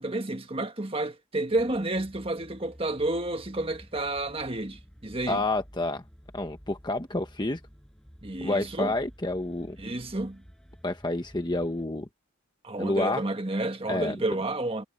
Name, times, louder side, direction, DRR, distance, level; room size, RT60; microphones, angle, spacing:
voice 1, 0.0-5.4 8.2-8.9 9.8-10.4 12.6-14.8, right 2 dB, 25° right, 1.6 m, -30 dB
sound 1, 1.5-11.8, equal, 5° left, 7.4 m, -52 dB
voice 2, 5.3-6.0 6.3-7.6 8.4-9.8 10.8-12.1 12.8-13.2 13.9-14.2, left 2 dB, 20° left, 1.2 m, -29 dB
head